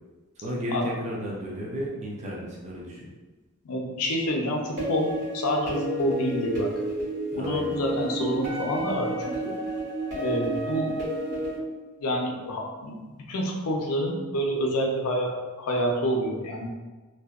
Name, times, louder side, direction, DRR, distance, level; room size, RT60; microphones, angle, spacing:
voice 1, 0.4-3.1 7.3-7.9, equal, 30° right, -4 dB, 0.4 m, -33 dB
voice 2, 3.6-6.7 7.3-9.6 10.2-11.5 12.0-16.7, equal, 85° left, 1 dB, 0.5 m, -28 dB
sound 1, 4.8-11.6, right 1 dB, 60° right, 1.4 m, -31 dB
2.6 x 2.1 x 2.3 m, 1.3 s
head